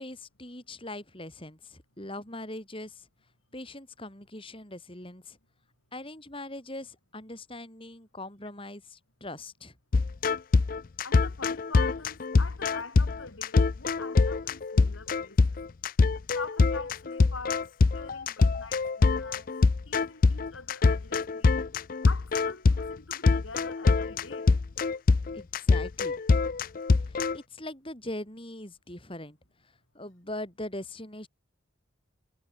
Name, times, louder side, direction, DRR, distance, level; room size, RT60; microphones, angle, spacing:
voice 1, 0.0-3.1 3.5-5.4 5.9-9.8 25.3-26.2 27.0-29.4 29.6-31.3, left 1 dB, 25° left, 6.8 m, -41 dB
sound 1, 9.9-27.4, left 3 dB, 45° left, 0.4 m, -24 dB
voice 2, 11.0-15.4 16.3-19.5 19.8-21.6 22.1-24.5, left 4 dB, 80° left, 4.5 m, -44 dB
head